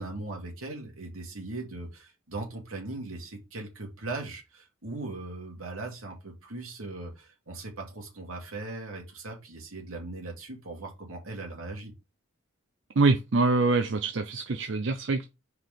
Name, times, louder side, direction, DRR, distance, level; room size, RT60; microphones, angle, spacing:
voice 1, 0.0-11.9, right 2 dB, 85° right, 2.4 m, -39 dB
voice 2, 13.0-15.2, right 3 dB, 60° right, 0.5 m, -24 dB
4.7 x 4.0 x 5.2 m
head